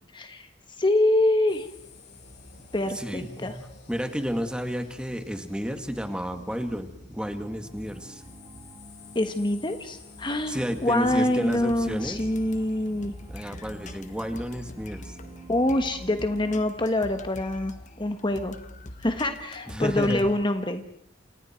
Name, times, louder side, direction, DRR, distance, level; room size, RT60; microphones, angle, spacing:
voice 1, 0.1-0.5 0.8-1.7 2.7-3.5 9.1-13.1 15.5-18.5 19.0-21.0, left 1 dB, 25° left, 7 dB, 1.4 m, -25 dB
sound 1, 1.5-19.2, left 1 dB, 65° left, 6.8 m, -50 dB
voice 2, 2.9-3.6 3.9-8.2 10.5-12.2 13.3-15.2 19.7-20.3, equal, 5° right, 6 dB, 2.1 m, -31 dB
sound 2, 7.4-16.5, right 1 dB, 25° right, 5.1 m, -49 dB
sound 3, 11.3-20.4, left 2 dB, 40° left, 1.4 m, -45 dB
29.0 x 28.5 x 4.6 m, 0.67 s
head